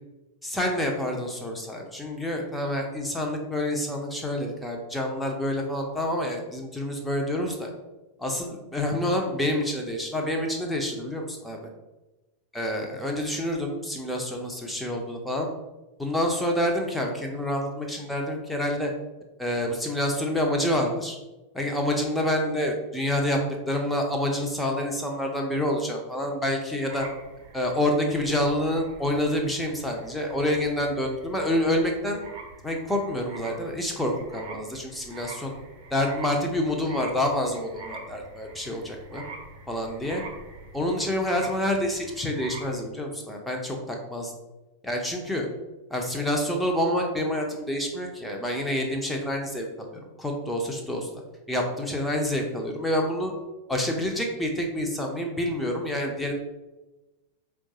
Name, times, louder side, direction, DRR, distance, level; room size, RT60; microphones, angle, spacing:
voice 1, 0.4-7.7 8.2-11.7 12.5-15.5 16.0-18.9 19.4-21.2 21.5-23.4 23.7-27.1 27.5-32.2 32.6-35.5 35.9-39.2 39.7-40.2 40.7-44.3 44.8-45.5 45.9-51.1 51.5-53.3 53.7-56.3, left 1 dB, 5° left, 1 dB, 0.6 m, -27 dB
sound 1, 26.9-42.8, right 3 dB, 45° right, 0.8 m, -45 dB
4.5 x 2.3 x 2.8 m, 1.1 s
figure-of-eight pair, 90°, 0 cm